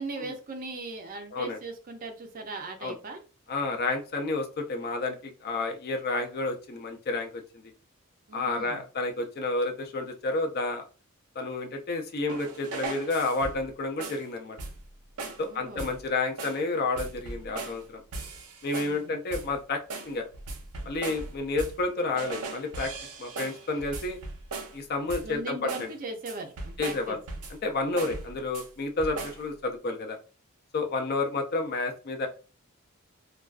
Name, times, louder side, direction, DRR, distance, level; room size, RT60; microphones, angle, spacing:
voice 1, 0.0-3.2 8.3-8.8 15.4-15.9 18.8-19.2 25.2-27.2 28.0-28.2, right 3 dB, 40° right, 5 dB, 0.4 m, -39 dB
voice 2, 3.5-7.6 8.3-10.8 11.4-14.6 15.4-18.0 18.6-19.8 20.1-20.3 20.9-22.9 23.2-24.2 24.7-25.9 26.8-27.2 27.6-30.2 30.7-32.3, left 3 dB, 45° left, 4 dB, 0.4 m, -30 dB
sound 1, 12.3-13.7 14.0-14.3 14.6-14.9 15.2-15.5 15.8-16.1 16.4-16.7 17.0-17.8 18.1-19.0 19.3-19.6 19.9-21.9 22.2-24.8 25.1-25.4 25.7-26.0 26.3-27.6 28.0-28.7 29.0-29.5, right 3 dB, 85° right, 0.6 m, -38 dB
2.4 x 2.2 x 2.3 m, 0.35 s
head